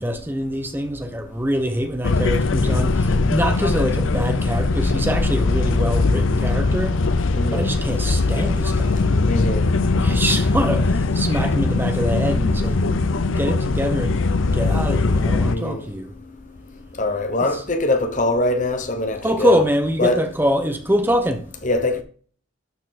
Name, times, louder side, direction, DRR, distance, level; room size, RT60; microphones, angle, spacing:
voice 1, 0.0-7.0 7.5-9.1 9.9-12.8 13.4-14.2 14.5-16.1 19.2-21.4, equal, 10° right, 0.8 m, -24 dB
sound 1, 2.0-15.6, left 3 dB, 80° left, 0.6 m, -20 dB
voice 2, 7.3-7.7 9.3-9.7 15.4-15.9 17.0-19.6 20.0-20.3 21.6-22.0, left 2 dB, 40° left, 1.0 m, -23 dB
12.5 x 4.5 x 4.1 m
head